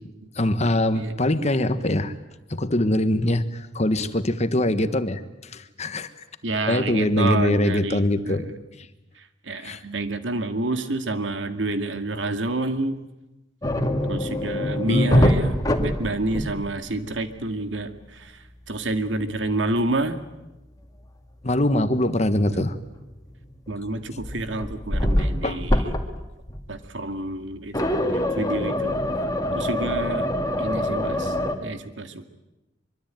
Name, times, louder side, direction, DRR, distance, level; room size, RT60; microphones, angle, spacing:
voice 1, 0.4-2.1 2.5-5.2 5.5-6.1 6.7-8.5 9.5-9.8 14.9-15.1 21.4-22.7 25.4-25.6, left 1 dB, 35° left, 11 dB, 1.4 m, -23 dB
voice 2, 6.4-8.5 9.2-13.0 14.0-20.2 22.5-22.7 23.7-25.9 26.7-28.9 29.5-30.3 30.6-31.4 31.6-32.2, right 2 dB, 80° right, 8 dB, 2.2 m, -29 dB
sound 1, 13.6-16.9 17.1-17.4 20.8-20.9 23.2-23.7 24.2-26.2 26.5-26.8 27.7-31.5, left 1 dB, 20° left, 2.3 m, -24 dB
24.5 x 24.0 x 9.1 m, 1.0 s
head